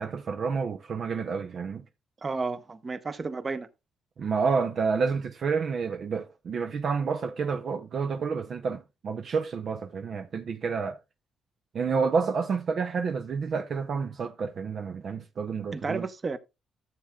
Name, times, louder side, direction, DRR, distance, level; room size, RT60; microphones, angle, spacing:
voice 1, 0.0-1.8 4.2-11.0 11.7-16.0, right 5 dB, 55° right, 0.6 m, -29 dB
voice 2, 2.2-3.7 15.7-16.4, right 4 dB, 30° right, 0.9 m, -32 dB
13.5 x 7.4 x 2.3 m
cardioid pair, 90°, 0 cm